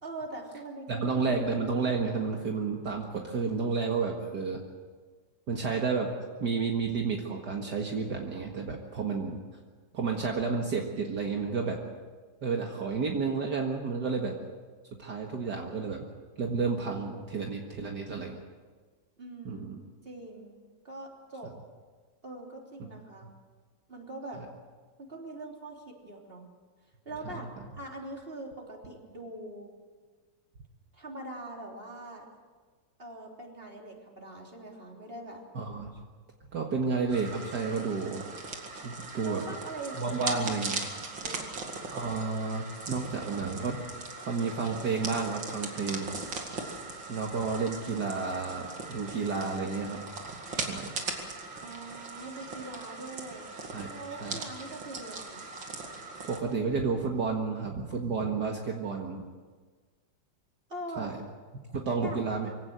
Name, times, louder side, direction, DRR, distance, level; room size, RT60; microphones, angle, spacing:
voice 1, 0.0-1.4 19.2-19.7 20.0-21.5 22.2-23.3 23.9-24.4 25.0-26.5 27.1-27.5 27.7-29.7 30.9-32.3 33.0-35.4 39.2-40.9 41.2-41.5 51.6-53.5 53.9-55.5 60.7-61.1 62.0-62.2, right 2 dB, 30° right, 0 dB, 3.6 m, -42 dB
voice 2, 0.9-4.6 5.5-6.1 6.4-9.4 9.9-11.8 12.4-14.4 15.0-16.1 16.4-18.4 19.5-19.8 24.4-24.5 27.3-27.5 35.5-35.9 36.5-38.3 38.8-39.5 40.0-40.8 41.9-43.8 44.3-46.1 47.1-50.0 50.7-50.9 53.7-53.9 54.2-54.4 56.3-59.2 61.0-61.2 61.7-62.5, right 4 dB, 60° right, 1 dB, 2.3 m, -31 dB
sound 1, 37.1-56.4, right 3 dB, 85° right, 3.0 m, -39 dB
24.5 x 17.0 x 8.0 m, 1.5 s
omnidirectional pair, 2.0 m